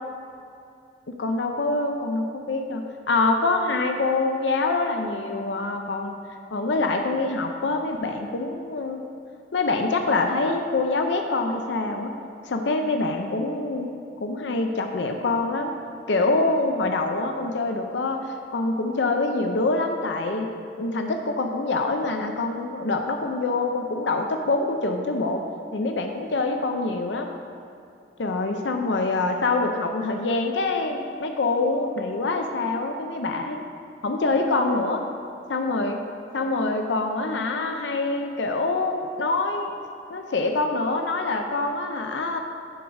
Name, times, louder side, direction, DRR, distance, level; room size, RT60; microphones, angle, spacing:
voice 1, 1.2-6.2 6.5-9.0 9.5-12.1 12.4-13.9 14.2-15.7 16.1-20.5 20.8-25.4 25.7-27.3 28.2-33.6 34.0-35.0 35.5-36.0 36.3-39.7 40.1-42.4, left 3 dB, 85° left, 4 dB, 0.6 m, -25 dB
10.0 x 4.7 x 5.9 m, 2.6 s
head